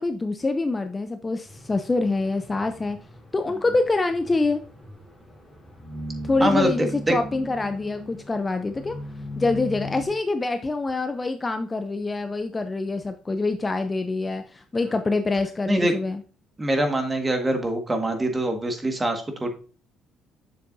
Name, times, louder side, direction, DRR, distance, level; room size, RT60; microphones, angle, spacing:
voice 1, 0.0-3.0 3.3-4.6 6.2-9.0 9.4-16.2, left 3 dB, 20° left, 8 dB, 0.5 m, -25 dB
sound 1, 1.4-10.1, left 1 dB, ahead, 3.6 m, -38 dB
voice 2, 6.4-7.2 15.7-15.9 16.6-19.5, right 1 dB, 20° right, 5 dB, 1.6 m, -24 dB
7.5 x 6.8 x 2.6 m, 0.37 s
cardioid pair, 105°, 0 cm